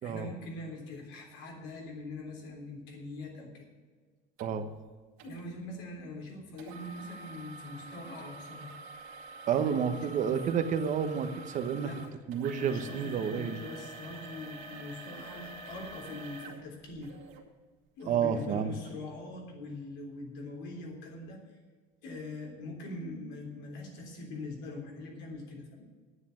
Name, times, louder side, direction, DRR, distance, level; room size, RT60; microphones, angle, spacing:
voice 1, 0.0-3.6 5.2-8.7 9.5-10.3 11.7-12.0 12.5-17.2 18.0-21.4 22.0-25.8, left 2 dB, 70° left, 0 dB, 3.5 m, -43 dB
sound 1, 4.4-4.5 5.2-5.4 6.6-17.4 18.0-18.1 18.7-18.8, right 3 dB, 80° right, 2.0 m, -47 dB
voice 2, 9.5-11.9 12.3-13.6 18.1-18.7, right 7 dB, 40° right, 8 dB, 1.1 m, -30 dB
9.8 x 8.2 x 9.1 m, 1.5 s
cardioid pair, 160°, 19 cm